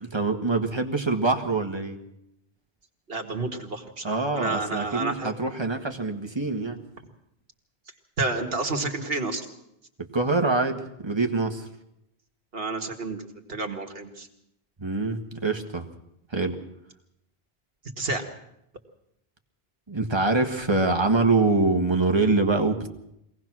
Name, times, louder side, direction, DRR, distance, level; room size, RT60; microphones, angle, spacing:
voice 1, 0.0-2.0 4.0-6.8 10.1-11.7 14.8-15.8 16.3-16.6 19.9-22.9, right 3 dB, 25° right, 4 dB, 1.6 m, -24 dB
voice 2, 3.1-5.3 8.2-9.5 12.5-14.3 18.0-18.2, right 3 dB, 65° right, 4 dB, 2.2 m, -30 dB
23.5 x 18.0 x 6.2 m, 0.80 s
omnidirectional pair, 1.1 m